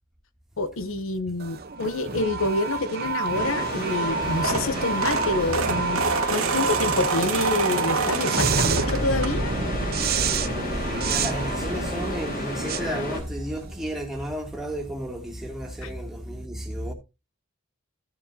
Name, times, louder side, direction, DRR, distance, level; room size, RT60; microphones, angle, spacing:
voice 1, 0.6-9.5 15.8-15.9, left 2 dB, 70° left, 0.8 m, -27 dB
sound 1, 1.4-13.8, right 4 dB, 45° right, 0.8 m, -29 dB
sound 2, 3.3-13.2, left 1 dB, 45° left, 3.9 m, -32 dB
sound 3, 4.1-9.7 10.2-10.5 11.7-11.8 12.0-12.1 12.5-12.6, right 4 dB, 85° right, 1.4 m, -28 dB
voice 2, 10.7-16.9, right 1 dB, ahead, 2.6 m, -33 dB
15.0 x 7.1 x 2.8 m
head